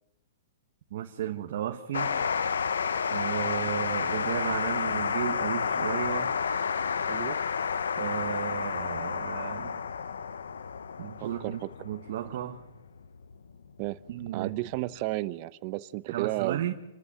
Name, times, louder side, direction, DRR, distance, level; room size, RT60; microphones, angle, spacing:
voice 1, 0.9-2.1 3.1-6.3 8.0-9.8 11.0-12.6 14.1-14.6 16.1-16.7, right 11 dB, 60° right, 4 dB, 1.4 m, -34 dB
sound 1, 1.9-14.9, left 6 dB, 90° left, 0.9 m, -31 dB
voice 2, 7.1-7.4 11.2-11.7 13.8-14.0 14.3-16.7, right 19 dB, 45° right, 16 dB, 0.8 m, -33 dB
28.5 x 13.5 x 7.6 m, 0.99 s
hypercardioid pair, 135°, 0 cm